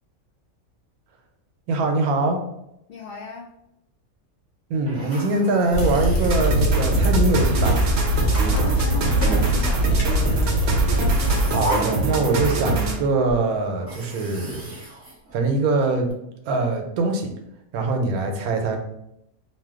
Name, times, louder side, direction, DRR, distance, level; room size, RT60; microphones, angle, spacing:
voice 1, 1.7-2.4 4.7-7.8 11.5-14.7 15.3-16.1 16.5-17.3 17.7-18.8, right 2 dB, 85° right, 4 dB, 1.1 m, -23 dB
voice 2, 2.9-3.6 8.4-10.7, left 3 dB, 85° left, -2 dB, 0.5 m, -37 dB
sound 1, 4.9-7.1 7.9-8.5 9.2-10.1 10.8-13.0 13.3-13.4 13.8-15.8, equal, 15° right, 0.6 m, -33 dB
sound 2, 5.7-11.5, equal, 65° left, 1.1 m, -22 dB
sound 3, 6.3-13.1, right 3 dB, 60° right, 0.7 m, -25 dB
2.7 x 2.2 x 3.5 m, 0.80 s
omnidirectional pair, 1.5 m